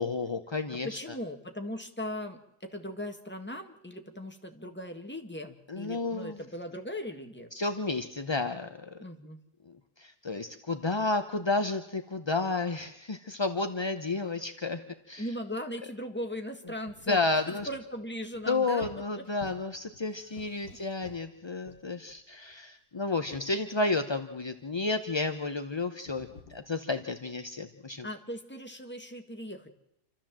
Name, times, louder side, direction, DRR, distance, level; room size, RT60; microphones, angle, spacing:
voice 1, 0.0-1.0 5.7-6.4 7.5-9.0 9.7-14.8 15.1-15.3 17.1-17.7 18.5-28.1, left 3 dB, 30° left, 7 dB, 0.5 m, -31 dB
voice 2, 0.8-7.5 9.0-9.4 15.2-17.2 17.5-18.8 28.0-29.7, equal, 5° left, 4 dB, 1.5 m, -38 dB
sound 1, 16.7-17.2 17.6-21.4 21.6-22.5 22.9-23.6 24.4-24.7 25.1-25.4 26.1-26.6, left 5 dB, 75° left, 1.9 m, -51 dB
28.5 x 13.5 x 7.5 m, 0.81 s
omnidirectional pair, 1.7 m